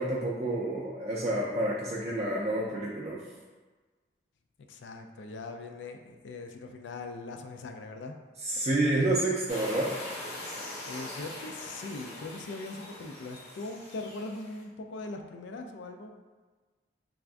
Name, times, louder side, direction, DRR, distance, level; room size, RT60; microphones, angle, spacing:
voice 1, 0.0-3.2 8.4-9.9, right 1 dB, 35° right, -5 dB, 0.4 m, -29 dB
voice 2, 4.7-8.2 10.8-16.1, left 3 dB, 80° left, 5 dB, 0.4 m, -41 dB
sound 1, 9.5-14.6, left 1 dB, 65° left, 0.9 m, -42 dB
3.5 x 2.5 x 3.4 m, 1.4 s
head